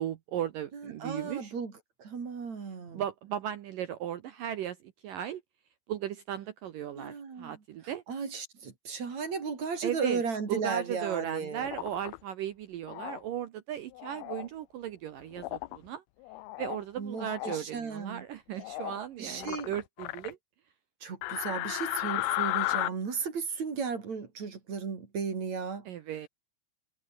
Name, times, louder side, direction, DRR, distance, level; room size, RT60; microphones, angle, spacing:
voice 1, 0.0-1.5 2.9-4.8 5.0-5.4 5.9-8.0 9.8-10.2 10.5-16.0 16.6-20.4 25.9-26.3, right 10 dB, 70° right, 2.2 m, -36 dB
voice 2, 0.7-1.7 2.0-3.0 6.9-7.6 8.1-11.7 17.0-18.2 19.2-19.7 21.0-25.9, right 5 dB, 40° right, 4.4 m, -35 dB
sound 1, 11.6-12.2 12.9-13.2 13.9-14.5 15.4-15.8 16.2-16.8 17.2-17.6 18.6-19.0 19.4-20.3 21.2-22.9, left 18 dB, 75° left, 2.4 m, -34 dB
omnidirectional pair, 5.2 m